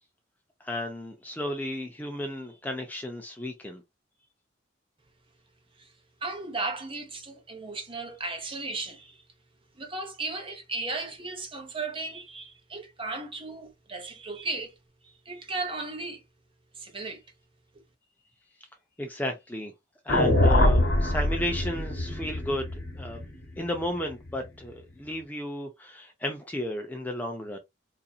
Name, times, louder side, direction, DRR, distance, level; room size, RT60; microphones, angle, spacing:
voice 1, 0.6-3.8 19.0-19.7 20.0-23.3 23.6-27.6, left 1 dB, 10° left, 0.5 m, -33 dB
voice 2, 6.2-9.2 9.7-14.7 15.0-16.2 16.7-17.2, right 3 dB, 30° right, 0.9 m, -35 dB
sound 1, 20.1-24.4, left 1 dB, 60° left, 1.0 m, -24 dB
3.9 x 2.7 x 2.3 m
head